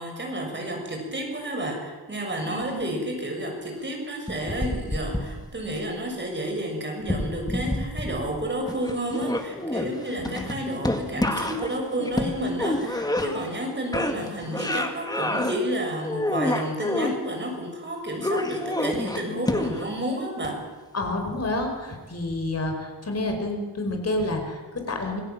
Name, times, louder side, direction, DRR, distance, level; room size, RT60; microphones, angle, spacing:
voice 1, 0.0-20.6, right 1 dB, 25° right, 1 dB, 6.9 m, -31 dB
voice 2, 2.4-2.9 10.2-10.5 20.9-25.2, left 2 dB, 35° left, 3 dB, 5.0 m, -29 dB
sound 1, 4.3-5.8 7.0-8.4 8.7-13.6 13.9-15.6 16.0-17.1 18.2-20.0 20.4-20.5, left 1 dB, 10° left, 2.1 m, -28 dB
27.0 x 17.5 x 7.7 m, 1.3 s
wide cardioid pair, 135°, 41 cm